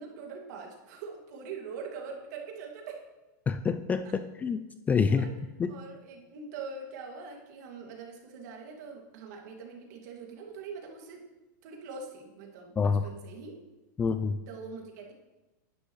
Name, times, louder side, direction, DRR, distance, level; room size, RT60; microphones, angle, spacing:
voice 1, 0.0-3.0 5.1-5.3 5.7-11.2 11.6-13.6 14.5-15.1, right 5 dB, 60° right, 1 dB, 2.2 m, -43 dB
voice 2, 3.5-4.6 4.9-5.3 5.6-5.7 12.8-13.0 14.0-14.4, left 5 dB, 15° left, 11 dB, 0.3 m, -26 dB
11.0 x 10.0 x 3.1 m, 1.1 s
supercardioid pair, 140°, 11 cm